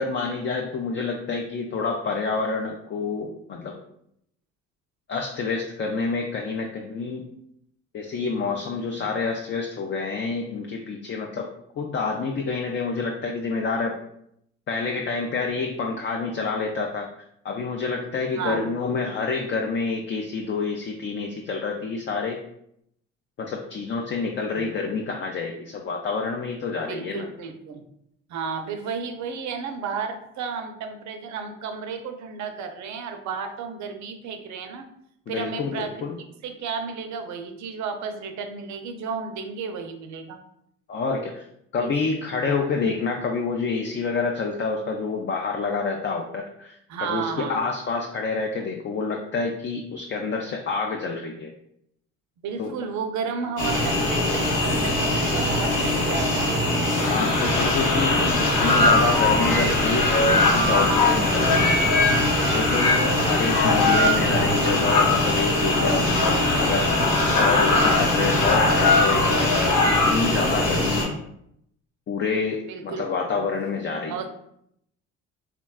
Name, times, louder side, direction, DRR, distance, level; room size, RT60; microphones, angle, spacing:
voice 1, 0.0-3.7 5.1-7.3 7.9-11.5 11.8-13.9 14.7-17.1 17.4-22.4 23.4-27.3 35.3-36.2 40.9-41.4 41.7-51.5 52.6-52.7 57.0-61.8 62.4-66.9 67.2-71.1 72.1-74.3, left 4 dB, 35° left, 1 dB, 0.4 m, -28 dB
voice 2, 18.4-18.8 24.5-24.8 26.9-27.8 28.3-34.9 35.3-36.1 36.4-40.4 41.7-41.9 42.4-42.7 46.9-47.6 52.4-56.5 72.7-73.0 73.4-73.5 74.1-74.3, right 5 dB, 60° right, 6 dB, 0.5 m, -33 dB
sound 1, 53.6-71.0, left 1 dB, 90° left, 1.0 m, -23 dB
sound 2, 57.0-70.5, left 3 dB, 65° left, 0.8 m, -23 dB
3.5 x 2.1 x 2.3 m, 0.74 s
supercardioid pair, 65°, 33 cm